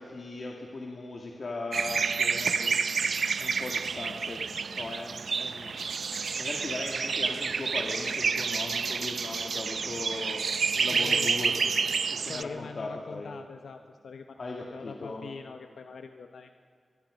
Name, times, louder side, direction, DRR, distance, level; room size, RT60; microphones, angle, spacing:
voice 1, 0.0-2.8 3.4-4.4 4.7-6.0 6.4-10.4 10.7-11.7 12.1-13.3 14.4-15.3, left 2 dB, 50° left, -1 dB, 2.2 m, -38 dB
sound 1, 1.7-12.4, right 5 dB, 65° right, 0.5 m, -29 dB
voice 2, 10.9-11.3 12.3-16.6, left 5 dB, 85° left, 6 dB, 0.8 m, -43 dB
23.0 x 22.5 x 5.2 m, 2.3 s
wide cardioid pair, 135°, 0 cm